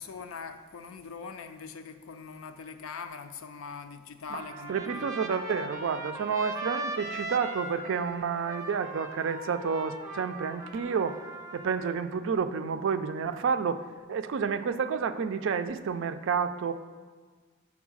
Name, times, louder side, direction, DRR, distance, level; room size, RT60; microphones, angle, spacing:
voice 1, 0.0-5.1, left 5 dB, 85° left, 8 dB, 0.5 m, -42 dB
voice 2, 4.3-11.2 11.5-13.8 14.1-16.7, right 6 dB, 65° right, 10 dB, 0.4 m, -30 dB
Trumpet, 4.4-12.0, right 2 dB, 15° right, 0.6 m, -39 dB
7.1 x 3.7 x 6.2 m, 1.5 s
head